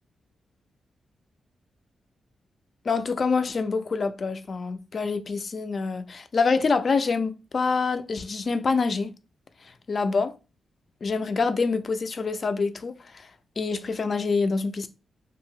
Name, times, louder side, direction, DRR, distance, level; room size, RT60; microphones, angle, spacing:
voice 1, 2.9-9.1 9.9-10.3 11.0-13.3 13.6-14.9, left 4 dB, 50° left, 0.3 m, -26 dB
2.8 x 2.3 x 2.6 m
cardioid pair, 70°, 0 cm